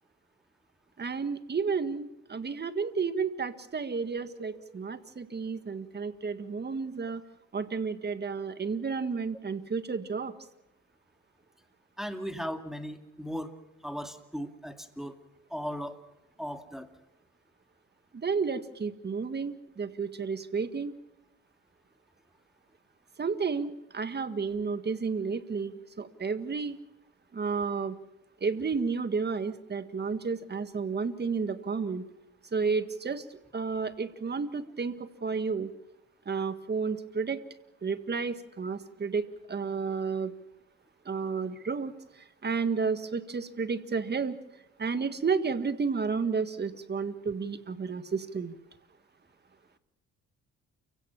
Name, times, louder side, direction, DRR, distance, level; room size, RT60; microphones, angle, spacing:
voice 1, 1.0-7.2 7.5-10.3 18.1-20.9 23.2-26.8 27.3-28.0 28.4-32.0 32.5-33.2 33.5-35.7 36.3-37.4 37.8-40.3 41.1-41.9 42.4-44.4 44.8-48.6, right 5 dB, 35° right, 11 dB, 1.8 m, -31 dB
voice 2, 12.0-13.5 13.8-15.2 15.5-16.0 16.4-16.9, equal, ahead, 6 dB, 2.3 m, -37 dB
29.5 x 16.5 x 7.2 m, 0.91 s
cardioid pair, 90°, 30 cm